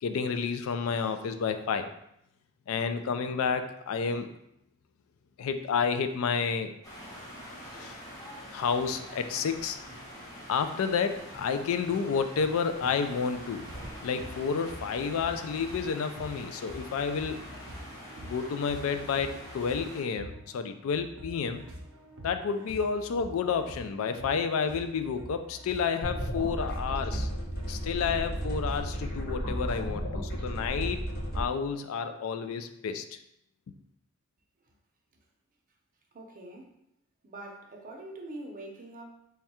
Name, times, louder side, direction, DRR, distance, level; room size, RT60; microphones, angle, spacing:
voice 1, 0.0-1.9 2.7-4.3 5.4-6.7 7.7-8.0 8.5-9.8 10.5-13.6 14.0-17.4 18.2-21.7 22.2-27.3 27.7-31.0 31.3-33.0, left 6 dB, 70° left, 9 dB, 0.3 m, -30 dB
sound 1, 6.8-20.0, equal, 20° left, 0.9 m, -45 dB
sound 2, 13.5-30.1, equal, 80° right, 0.7 m, -47 dB
sound 3, 26.0-31.4, equal, 50° left, 1.1 m, -33 dB
voice 2, 36.1-36.7 37.2-39.0, right 1 dB, 40° right, 1 dB, 0.6 m, -44 dB
3.5 x 2.3 x 4.2 m, 0.78 s
head